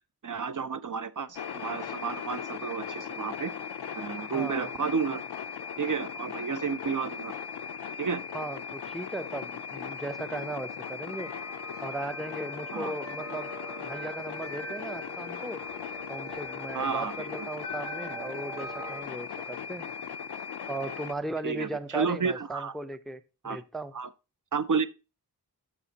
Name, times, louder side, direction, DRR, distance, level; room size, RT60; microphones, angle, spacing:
voice 1, 0.2-3.5 3.9-5.2 5.8-7.3 8.0-8.2 12.7-12.9 16.7-17.5 21.4-22.7 23.4-23.6 23.9-24.1 24.5-24.9, right 5 dB, 55° right, 0.5 m, -31 dB
sound 1, 1.3-21.1, left 7 dB, 80° left, 0.5 m, -38 dB
voice 2, 4.3-4.7 8.3-11.3 11.8-13.5 13.8-15.6 16.1-19.9 20.7-23.9, right 2 dB, ahead, 0.4 m, -37 dB
sound 2, 10.7-19.0, right 1 dB, 85° right, 4.6 m, -43 dB
13.0 x 5.0 x 2.8 m
wide cardioid pair, 50°, 39 cm